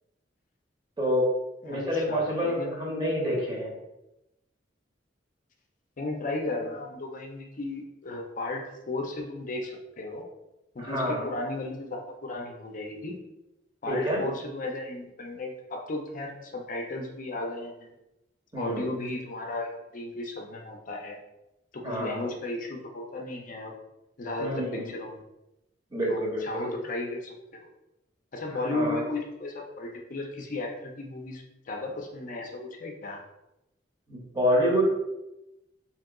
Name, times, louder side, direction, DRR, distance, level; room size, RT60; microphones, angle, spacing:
voice 1, 1.0-1.3 1.6-3.7 10.8-11.3 13.9-14.3 18.5-18.9 21.8-22.3 24.4-24.9 25.9-26.7 28.5-29.0 34.1-34.8, equal, 25° right, -2 dB, 0.9 m, -28 dB
voice 2, 1.6-2.7 6.0-10.2 10.7-13.2 13.8-17.9 18.6-21.2 21.7-23.7 24.2-25.2 26.1-27.7 28.3-33.2, left 2 dB, 45° left, 1 dB, 0.5 m, -35 dB
2.9 x 2.8 x 3.6 m, 0.93 s
head